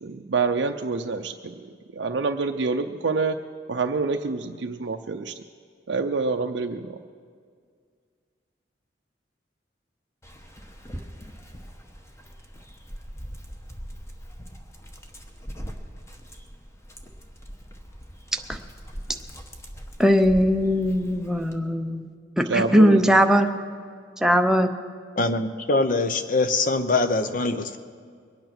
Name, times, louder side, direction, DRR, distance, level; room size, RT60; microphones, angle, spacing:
voice 1, 0.0-3.4 3.7-5.3 5.9-6.9 22.5-23.2, right 4 dB, 75° right, 4 dB, 0.5 m, -27 dB
Dog, 10.2-21.6, equal, 15° left, 1.0 m, -41 dB
voice 2, 20.0-23.5 24.2-24.7, equal, 5° right, 5 dB, 0.6 m, -20 dB
voice 3, 25.2-27.8, left 3 dB, 45° left, 9 dB, 0.8 m, -23 dB
22.5 x 9.1 x 6.0 m, 2.1 s
head